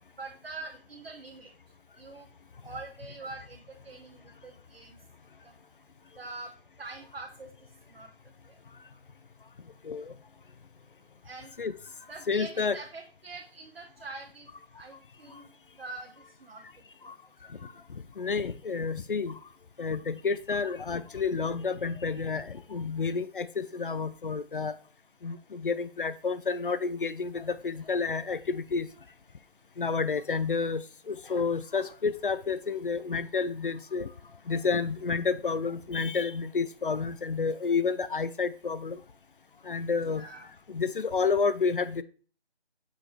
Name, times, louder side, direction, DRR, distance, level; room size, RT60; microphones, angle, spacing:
voice 1, 0.2-1.5 2.0-2.3 2.6-5.0 6.2-6.5 6.8-7.5 7.9-8.1 11.2-11.5 12.1-14.5 14.8-15.5 15.8-16.1 16.4-16.6 40.0-40.5, right 3 dB, 70° right, 1 dB, 1.1 m, -44 dB
voice 2, 12.3-12.8 15.3-15.4 17.0-17.1 17.5-19.4 19.8-24.7 25.2-28.9 29.8-34.1 34.5-39.0 39.6-40.3 40.7-42.0, left 5 dB, 55° left, 14 dB, 0.5 m, -30 dB
6.4 x 4.9 x 3.3 m, 0.39 s
figure-of-eight pair, 170°, 31 cm